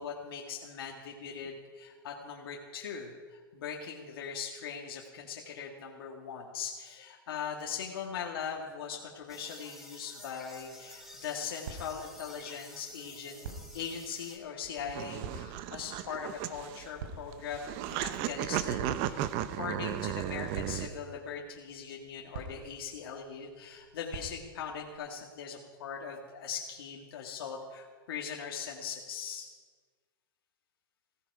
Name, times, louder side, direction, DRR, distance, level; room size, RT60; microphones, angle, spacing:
voice 1, 0.0-19.3 19.6-29.5, left 7 dB, 75° left, -1 dB, 1.9 m, -40 dB
sound 1, 9.3-14.4, left 1 dB, 5° right, 3.9 m, -51 dB
sound 2, 10.4-24.9, right 4 dB, 75° right, 3.3 m, -49 dB
sound 3, 14.6-20.9, right 12 dB, 45° right, 0.8 m, -35 dB
16.0 x 15.5 x 4.7 m, 1.5 s
hypercardioid pair, 125°, 12 cm